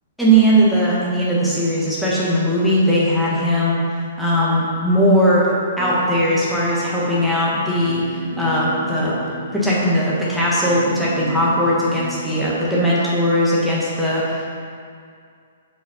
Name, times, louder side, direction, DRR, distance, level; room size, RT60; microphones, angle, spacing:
voice 1, 0.2-3.8 4.2-5.4 5.8-8.0 8.4-9.1 9.5-14.5, equal, ahead, -8 dB, 1.5 m, -18 dB
sound 1, 5.8-12.4, right 2 dB, 40° right, 1.9 m, -33 dB
7.5 x 5.5 x 4.2 m, 2.2 s
hypercardioid pair, 160°, 0 cm